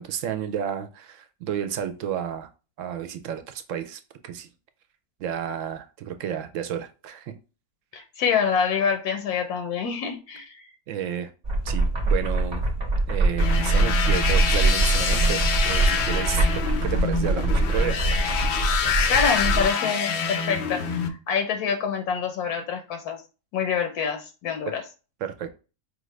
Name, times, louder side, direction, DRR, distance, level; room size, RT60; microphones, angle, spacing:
voice 1, 0.0-2.5 2.8-4.5 5.2-7.3 10.9-11.3 11.6-12.6 13.1-16.4 16.8-18.0 25.2-25.5, right 9 dB, 70° right, 8 dB, 0.8 m, -31 dB
voice 2, 7.9-10.5 19.1-23.2 23.5-24.8, left 6 dB, 85° left, 6 dB, 1.2 m, -26 dB
sheet film, 11.4-19.7, right 2 dB, 35° right, 0.7 m, -23 dB
sound 1, 13.4-21.1, left 6 dB, 65° left, 0.7 m, -26 dB
4.9 x 2.4 x 3.1 m, 0.33 s
omnidirectional pair, 1.6 m